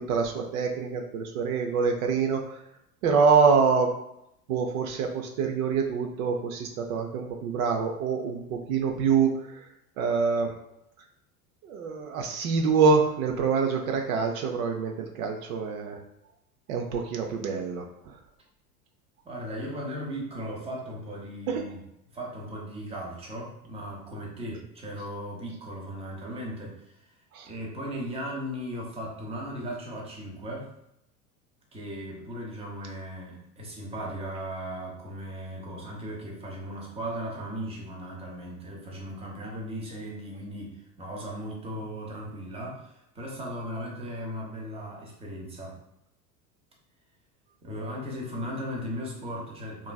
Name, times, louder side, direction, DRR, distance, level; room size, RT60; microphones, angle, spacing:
voice 1, 0.0-2.6 3.0-3.9 4.5-9.7 10.0-10.5 11.6-16.0 16.7-18.2 21.5-21.6 27.3-27.5, right 5 dB, 65° right, 3 dB, 0.5 m, -25 dB
voice 2, 19.2-21.8 22.1-27.1 27.4-30.7 31.7-45.8 47.6-49.9, equal, 15° right, -2 dB, 0.7 m, -37 dB
3.0 x 2.5 x 2.2 m, 0.82 s
hypercardioid pair, 90°, 46 cm